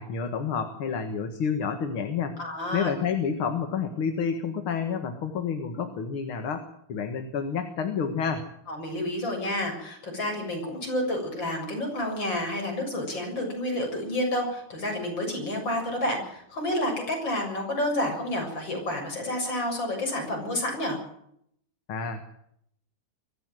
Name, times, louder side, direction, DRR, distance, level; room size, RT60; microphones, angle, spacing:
voice 1, 0.0-2.4 2.7-8.4 21.9-22.2, left 6 dB, 70° left, 6 dB, 2.5 m, -29 dB
voice 2, 2.4-2.9 8.7-21.0, left 1 dB, 55° left, 2 dB, 8.0 m, -29 dB
24.0 x 15.0 x 7.8 m, 0.71 s
omnidirectional pair, 2.4 m